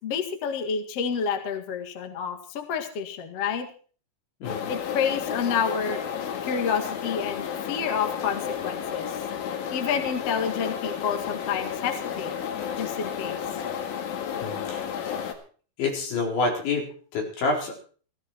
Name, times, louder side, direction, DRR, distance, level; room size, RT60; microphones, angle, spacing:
voice 1, 0.0-3.7 4.7-6.0 6.4-9.2 9.7-12.3 12.8-13.4, left 6 dB, 50° left, 6 dB, 2.0 m, -29 dB
sound 1, 4.4-15.3, left 8 dB, 85° left, 4.4 m, -32 dB
voice 2, 14.4-14.8 15.8-16.8 17.1-17.8, left 3 dB, 70° left, 1 dB, 6.4 m, -27 dB
17.0 x 16.0 x 4.5 m, 0.42 s
omnidirectional pair, 5.4 m